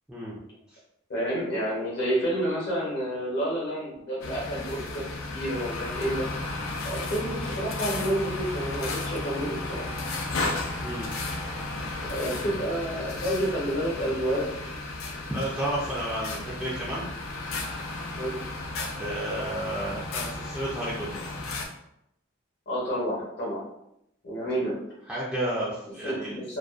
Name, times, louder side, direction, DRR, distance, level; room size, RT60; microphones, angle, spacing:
voice 1, 1.1-6.2 6.8-9.9 12.1-14.4 18.1-18.5 22.7-23.6 24.2-24.8 26.0-26.6, right 1 dB, 55° left, -5 dB, 0.8 m, -29 dB
sound 1, 4.2-21.7, left 2 dB, 85° left, 0.4 m, -34 dB
voice 2, 15.3-17.0 19.0-21.1 25.1-26.3, right 1 dB, 5° right, -8 dB, 0.4 m, -31 dB
2.4 x 2.2 x 2.3 m, 0.79 s
head